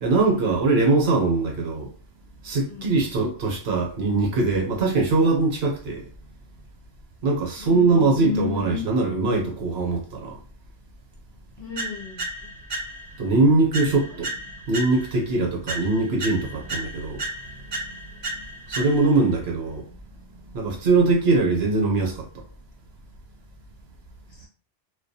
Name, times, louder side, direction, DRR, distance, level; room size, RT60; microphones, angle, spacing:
voice 1, 0.0-1.9 2.4-6.1 7.2-10.4 13.2-14.3 14.7-17.2 17.7-17.8 18.7-20.0 20.5-22.3, right 3 dB, 65° right, 0.9 m, -22 dB
voice 2, 2.7-3.0 7.6-8.8 11.6-12.5 14.0-14.3 24.3-24.5, left 6 dB, 50° left, 0.8 m, -33 dB
sound 1, 11.8-13.2 13.7-15.3 15.7-19.3, right 1 dB, 45° right, 0.4 m, -34 dB
2.2 x 2.2 x 2.6 m
omnidirectional pair, 1.2 m